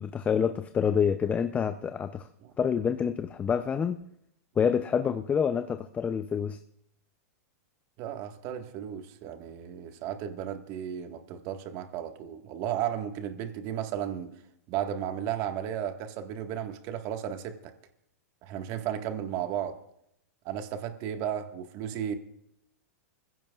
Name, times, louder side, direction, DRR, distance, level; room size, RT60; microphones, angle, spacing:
voice 1, 0.0-2.3 2.6-4.0 4.6-6.6, left 7 dB, 15° left, 9 dB, 0.6 m, -27 dB
voice 2, 8.0-14.3 14.7-17.7 18.4-19.8 20.5-22.1, right 10 dB, 45° right, 6 dB, 1.7 m, -34 dB
26.5 x 16.0 x 2.5 m, 0.76 s
hypercardioid pair, 130°, 8 cm